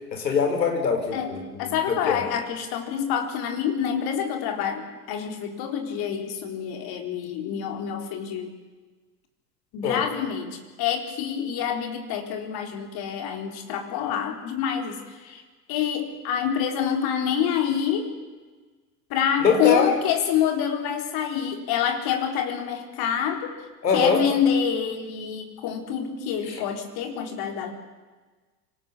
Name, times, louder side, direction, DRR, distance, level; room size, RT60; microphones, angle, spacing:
voice 1, 0.1-2.2 9.8-10.0 19.4-19.9 23.8-24.2 26.5-26.6, left 5 dB, 80° left, 6 dB, 5.2 m, -23 dB
voice 2, 1.1-8.5 9.7-15.4 15.7-18.1 19.1-23.5 23.9-27.7, left 8 dB, 45° left, 5 dB, 4.3 m, -27 dB
25.5 x 19.5 x 8.6 m, 1.3 s
hypercardioid pair, 90°, 49 cm